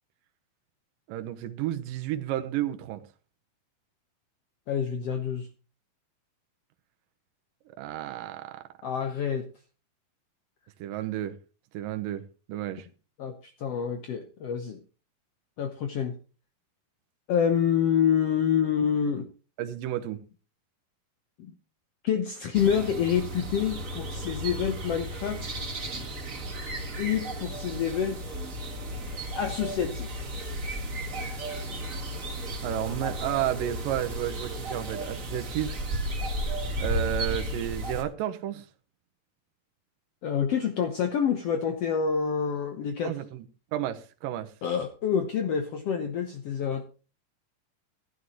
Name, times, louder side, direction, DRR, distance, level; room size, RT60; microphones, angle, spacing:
voice 1, 1.1-3.0 7.8-8.7 10.8-11.4 11.7-12.2 12.5-12.9 19.6-20.2 32.6-35.8 36.8-38.7 43.0-43.5 43.7-44.5, right 11 dB, 75° right, 2.5 m, -32 dB
voice 2, 4.7-5.5 8.8-9.5 13.2-14.8 15.6-16.2 17.3-19.3 21.4-21.5 22.0-25.5 27.0-28.4 29.4-30.3 40.2-43.2 44.6-46.8, left 8 dB, 85° left, 1.3 m, -27 dB
sound 1, 22.5-38.0, right 1 dB, 35° right, 1.3 m, -34 dB
15.0 x 11.5 x 3.1 m
omnidirectional pair, 4.3 m